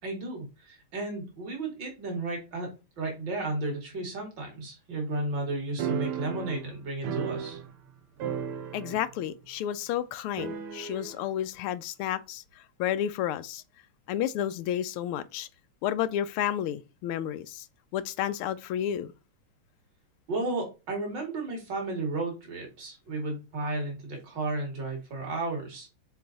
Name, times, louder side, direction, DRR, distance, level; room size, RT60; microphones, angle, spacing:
voice 1, 0.0-7.6 20.3-25.9, right 2 dB, 55° right, 3.0 m, -33 dB
sound 1, 5.8-7.9 8.2-9.2 9.5-9.6 10.4-11.2, right 8 dB, 85° right, 1.8 m, -34 dB
voice 2, 8.7-13.6 14.1-15.5 15.8-17.6 17.9-19.1, left 10 dB, 85° left, 1.5 m, -31 dB
6.7 x 4.1 x 4.0 m
omnidirectional pair, 2.4 m